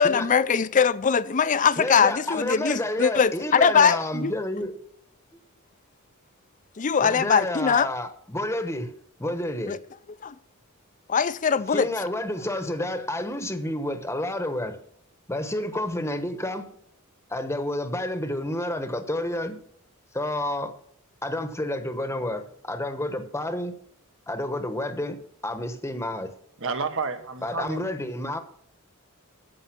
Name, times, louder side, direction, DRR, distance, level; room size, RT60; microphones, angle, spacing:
voice 1, 0.0-4.3 6.8-7.9 9.7-9.8 10.2-10.3 11.1-11.9, left 6 dB, 35° left, 0.5 m, -21 dB
voice 2, 1.8-4.8 7.0-8.9 9.2-9.8 11.7-14.8 15.3-16.7 17.3-19.6 20.1-20.7 21.2-23.8 24.3-26.3 27.4-28.4, left 1 dB, 10° left, 1.0 m, -30 dB
voice 3, 26.6-27.8, right 4 dB, 65° right, 1.2 m, -30 dB
14.0 x 5.5 x 5.9 m
head